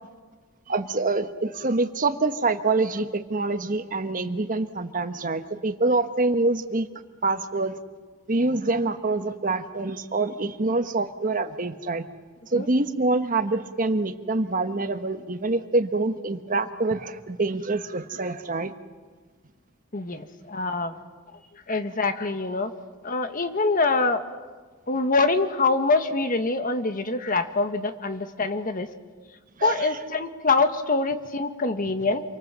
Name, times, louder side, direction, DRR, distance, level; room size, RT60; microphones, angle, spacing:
voice 1, 0.7-6.9 7.2-7.7 8.3-12.1 12.5-18.7 29.6-29.9, right 3 dB, 40° right, 9 dB, 1.3 m, -25 dB
voice 2, 19.9-20.9 21.7-22.7 23.0-24.2 24.9-28.9 29.6-32.2, left 3 dB, 40° left, 8 dB, 1.5 m, -24 dB
28.0 x 24.0 x 7.5 m, 1.5 s
head